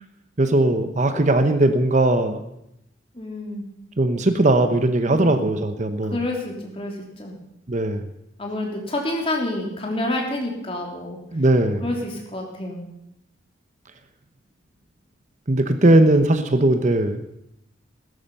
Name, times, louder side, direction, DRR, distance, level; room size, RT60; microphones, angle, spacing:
voice 1, 0.4-2.4 4.0-6.2 7.7-8.0 11.3-11.8 15.5-17.2, right 1 dB, 40° right, 9 dB, 0.9 m, -19 dB
voice 2, 3.1-3.6 5.1-5.5 6.1-7.3 8.4-11.2 11.8-12.9, left 1 dB, 30° left, 0 dB, 3.3 m, -28 dB
16.5 x 13.0 x 5.5 m, 0.81 s
head